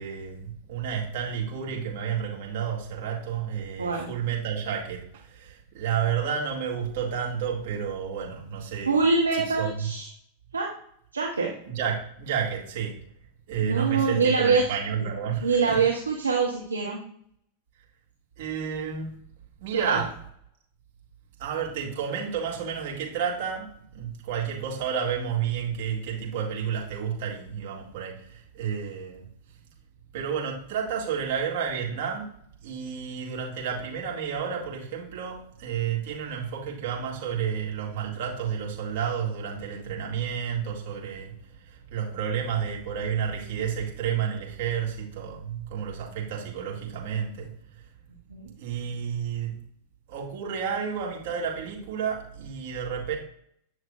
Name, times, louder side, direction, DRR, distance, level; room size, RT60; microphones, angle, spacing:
voice 1, 0.0-9.0 9.3-9.9 11.7-13.0 13.5-15.8 18.4-19.2 19.6-20.1 21.4-29.3 30.1-32.3 32.6-41.3 41.9-47.5 48.6-49.5 50.1-53.2, right 7 dB, 50° right, -2 dB, 2.2 m, -31 dB
voice 2, 3.8-4.1 8.9-10.1 10.5-10.7 11.1-11.5 13.6-14.6 15.4-17.0 19.9-20.0 48.3-48.5, right 4 dB, 75° right, 0 dB, 1.0 m, -24 dB
9.2 x 6.2 x 2.5 m, 0.65 s
figure-of-eight pair, 90°, 0 cm